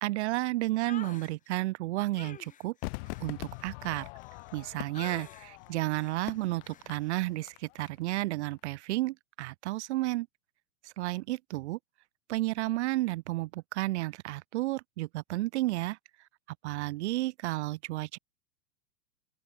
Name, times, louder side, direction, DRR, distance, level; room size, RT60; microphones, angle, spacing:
voice 1, 0.0-2.7 3.2-4.1 4.5-10.3 10.8-11.8 12.3-16.0 16.6-18.2, right 18 dB, 50° right, 0.5 m, -32 dB
sound 1, 0.8-1.3 2.1-4.6 4.9-5.5 5.9-6.2 6.6-6.9, left 9 dB, 15° left, 1.2 m, -48 dB
Crowd / Fireworks, 2.8-8.2 8.5-8.6, left 27 dB, 40° left, 0.9 m, -43 dB
open air
hypercardioid pair, 115°, 45 cm